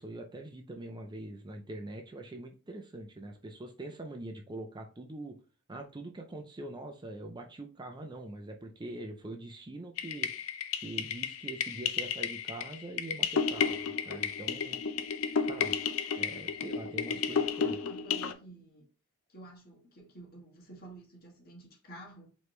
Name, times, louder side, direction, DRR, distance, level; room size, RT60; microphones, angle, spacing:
voice 1, 0.0-5.4 5.7-13.8 14.1-14.8 15.4-15.7 16.2-17.8, right 2 dB, 20° right, 0.4 m, -43 dB
sound 1, 10.0-18.3, left 6 dB, 65° left, 0.5 m, -32 dB
voice 2, 17.1-18.9 19.3-22.3, right 1 dB, 45° left, 1.5 m, -50 dB
4.8 x 3.1 x 3.1 m
head